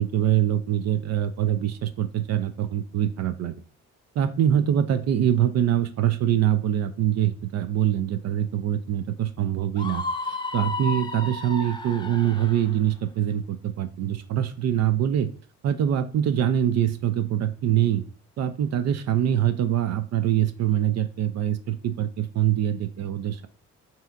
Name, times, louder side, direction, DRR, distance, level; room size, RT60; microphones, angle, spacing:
voice 1, 0.0-3.6 4.2-15.3 15.6-18.0 18.4-23.5, right 10 dB, 60° right, 11 dB, 0.5 m, -24 dB
Screaming, 9.8-12.7, left 3 dB, 15° left, 0.6 m, -32 dB
5.5 x 2.8 x 2.5 m, 0.42 s
cardioid pair, 90°, 30 cm